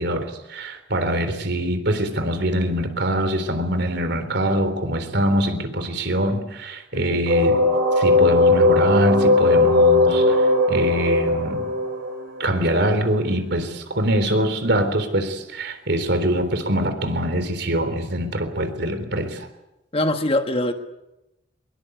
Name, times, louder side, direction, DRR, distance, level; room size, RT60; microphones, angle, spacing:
voice 1, 0.0-7.6 8.0-11.7 12.4-19.5, right 1 dB, 60° right, 9 dB, 3.6 m, -23 dB
sound 1, 7.3-13.0, left 2 dB, 80° right, 8.0 m, -18 dB
voice 2, 19.9-20.7, left 1 dB, 30° left, 6 dB, 1.7 m, -23 dB
23.5 x 22.5 x 8.0 m, 0.92 s
head